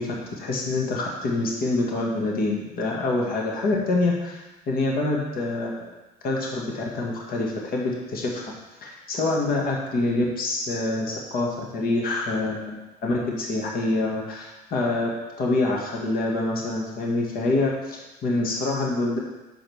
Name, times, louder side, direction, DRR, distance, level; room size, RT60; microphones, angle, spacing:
voice 1, 0.0-5.9 6.2-8.5 8.8-15.1 15.4-19.2, left 2 dB, 60° left, -2 dB, 1.8 m, -26 dB
6.3 x 5.2 x 6.2 m, 1.1 s
cardioid pair, 110°, 17 cm